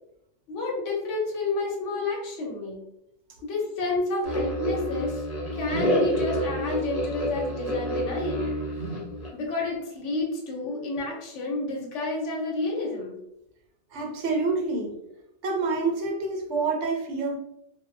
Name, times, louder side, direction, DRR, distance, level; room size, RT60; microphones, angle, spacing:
voice 1, 0.5-2.8 3.4-5.2 5.5-8.5 9.3-13.2, left 3 dB, 80° left, -2 dB, 1.0 m, -30 dB
sound 1, 4.2-9.3, equal, 35° left, 0.8 m, -28 dB
voice 2, 13.9-15.0 15.4-17.4, right 3 dB, 70° right, 2 dB, 0.9 m, -27 dB
2.7 x 2.2 x 2.5 m, 0.81 s
omnidirectional pair, 1.2 m